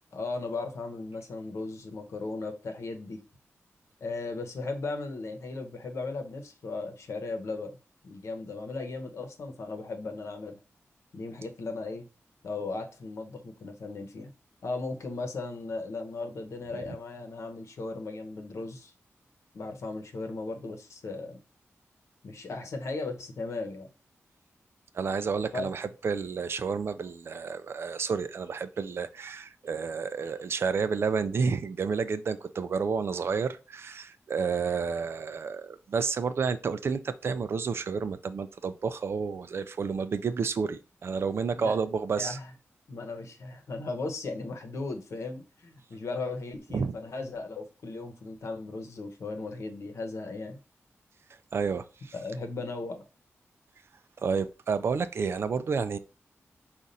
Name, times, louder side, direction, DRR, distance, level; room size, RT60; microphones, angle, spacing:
voice 1, 0.1-3.2 4.0-7.8 8.0-10.6 11.1-12.1 12.4-14.3 14.6-18.9 19.5-21.4 22.2-23.9 25.5-25.7 41.5-41.8 42.2-42.5 42.9-50.6 52.1-53.0, left 3 dB, 75° left, 0.9 m, -36 dB
voice 2, 24.9-42.4 46.7-46.9 51.5-52.1 54.2-56.0, right 5 dB, 55° right, 0.4 m, -30 dB
5.2 x 2.4 x 4.1 m
wide cardioid pair, 180°, 5 cm